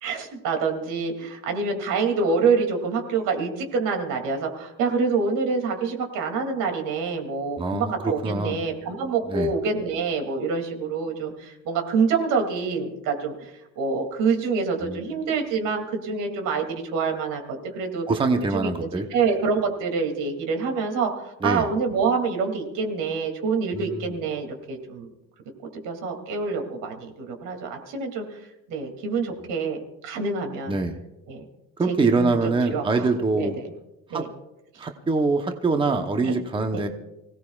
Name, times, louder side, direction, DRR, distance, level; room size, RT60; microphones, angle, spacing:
voice 1, 0.0-18.1 18.5-25.1 25.7-28.4 28.7-30.8 31.3-31.5 31.9-33.1 33.3-33.5 34.1-34.3 36.2-36.4 36.7-36.8, right 4 dB, 85° right, 4 dB, 2.7 m, -26 dB
voice 2, 7.6-8.6 9.3-9.5 14.8-15.0 18.1-19.1 21.4-21.7 23.7-24.1 30.7-31.0 31.8-33.6 34.1-34.3 34.8-36.9, right 3 dB, 15° right, 5 dB, 0.9 m, -24 dB
25.0 x 17.0 x 2.4 m, 0.96 s
cardioid pair, 150°, 31 cm